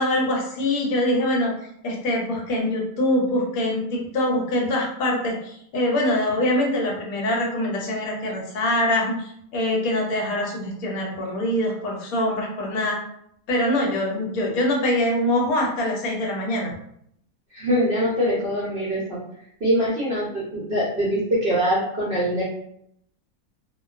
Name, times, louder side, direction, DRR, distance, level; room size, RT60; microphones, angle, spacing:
voice 1, 0.0-1.5 1.8-9.2 9.5-13.0 13.5-16.7 19.7-19.9, left 1 dB, 70° left, -1 dB, 1.0 m, -24 dB
voice 2, 17.5-19.2 19.6-22.4, equal, 55° right, -7 dB, 0.6 m, -23 dB
2.4 x 2.2 x 2.3 m, 0.71 s
omnidirectional pair, 1.6 m